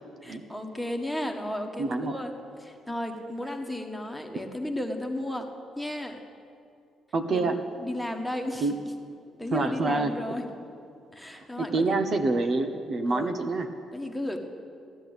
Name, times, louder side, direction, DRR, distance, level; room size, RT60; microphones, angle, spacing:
voice 1, 0.2-2.3 2.6-5.5 5.8-6.2 7.3-8.7 9.4-10.5 11.1-12.0 13.1-13.4 13.9-14.4, left 1 dB, ahead, 3 dB, 1.5 m, -34 dB
voice 2, 1.8-2.2 4.3-4.4 7.1-7.6 8.6-8.7 9.5-10.1 11.3-13.7, right 3 dB, 50° right, 7 dB, 0.9 m, -27 dB
15.5 x 10.5 x 8.1 m, 2.5 s
cardioid pair, 90°, 0 cm